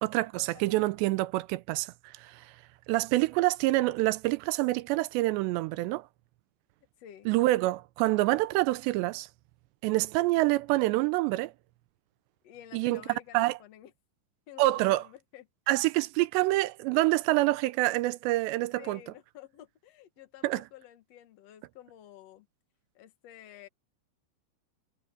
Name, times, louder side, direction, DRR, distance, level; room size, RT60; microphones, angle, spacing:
voice 1, 0.0-2.5 2.9-6.1 7.3-9.3 9.8-11.5 12.7-13.0 13.3-13.5 14.6-15.0 15.7-19.0 20.4-20.6, right 19 dB, 85° right, 2.8 m, -26 dB
voice 2, 0.5-1.0 7.0-7.3 12.4-13.9 14.5-15.5 18.7-22.5 22.9-23.7, left 11 dB, 65° left, 1.6 m, -51 dB
omnidirectional pair, 5.0 m